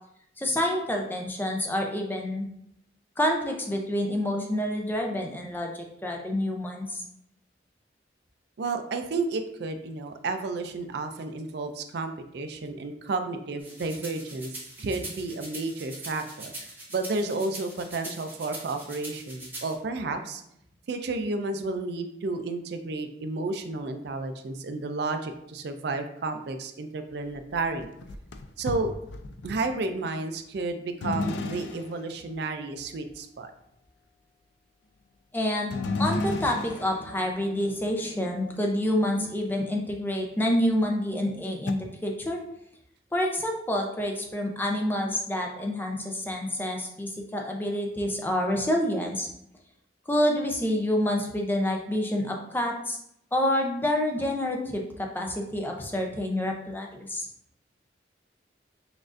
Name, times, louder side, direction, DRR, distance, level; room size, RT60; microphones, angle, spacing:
voice 1, 0.4-2.5 3.2-7.0 35.3-42.4 43.1-49.3 50.1-53.0 53.3-57.3, left 1 dB, 10° left, 1 dB, 0.5 m, -28 dB
voice 2, 8.6-14.5 14.8-20.4 20.9-27.9 28.6-28.9 29.4-33.5, right 3 dB, 60° right, 8 dB, 0.4 m, -32 dB
sound 1, 13.6-19.7, right 2 dB, 10° right, 0.9 m, -42 dB
sound 2, 27.1-29.7 31.0-32.3 35.7-39.6 40.2-40.3 41.7-41.8, left 3 dB, 70° left, 0.4 m, -34 dB
6.1 x 2.5 x 2.5 m, 0.75 s
head